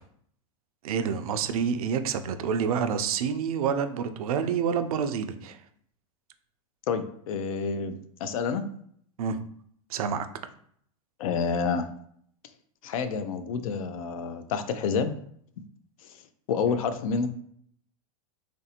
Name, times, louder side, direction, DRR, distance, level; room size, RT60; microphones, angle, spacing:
voice 1, 0.8-5.6 9.2-9.4 9.9-10.3, right 7 dB, 80° right, 9 dB, 0.4 m, -28 dB
voice 2, 6.9-8.6 11.2-11.9 12.8-15.1 16.5-17.3, left 5 dB, 70° left, 11 dB, 0.4 m, -28 dB
3.2 x 2.5 x 2.8 m, 0.66 s
hypercardioid pair, 130°, 18 cm